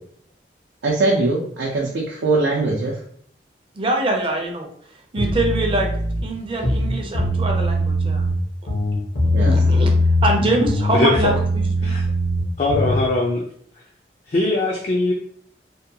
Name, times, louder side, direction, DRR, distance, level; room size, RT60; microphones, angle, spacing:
voice 1, 0.8-2.9 9.3-9.5 10.5-10.7, right 3 dB, 85° right, -3 dB, 0.5 m, -21 dB
voice 2, 3.8-4.7 5.1-5.9 6.2-8.2 9.4-9.9 10.2-11.9, right 2 dB, 30° right, 2 dB, 0.4 m, -23 dB
sound 1, 5.2-6.2 6.6-8.3 8.7-10.4 10.6-13.0, left 1 dB, 80° left, 0.9 m, -20 dB
voice 3, 10.9-11.4 11.8-12.0 12.6-13.4 14.3-15.1, left 2 dB, 40° left, -1 dB, 0.3 m, -21 dB
2.7 x 2.2 x 2.6 m, 0.63 s
head